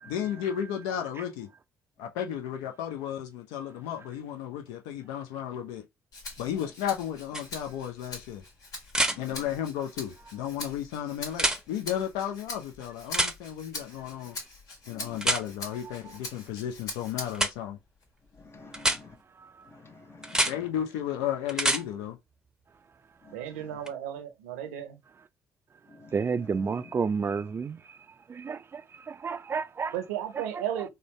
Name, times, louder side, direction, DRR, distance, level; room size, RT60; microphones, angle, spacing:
voice 1, 0.1-1.5 2.0-5.9 6.4-8.4 9.2-14.4 14.9-17.8 20.5-22.2, left 10 dB, 75° left, 0.6 m, -33 dB
Rattle (instrument), 6.1-17.6 18.0-19.2, left 3 dB, 60° left, 1.4 m, -43 dB
sound 1, 7.3-7.4 8.9-9.2 11.3-11.6 13.1-13.3 15.2-15.4 17.3-17.5 18.7-19.0 20.2-20.5 21.5-21.8 23.9-24.0, right 1 dB, 10° right, 0.7 m, -25 dB
voice 2, 8.9-9.4 14.9-15.2 18.3-19.2 19.7-20.7 23.2-23.8 25.9-26.2, left 3 dB, 35° left, 0.7 m, -50 dB
voice 3, 19.4-19.7 23.4-23.5 26.1-28.0 28.3-30.0 30.3-30.9, right 5 dB, 35° right, 0.4 m, -32 dB
voice 4, 23.3-25.0 29.9-30.9, right 10 dB, 80° right, 0.7 m, -34 dB
3.8 x 2.2 x 3.2 m
hypercardioid pair, 45°, 7 cm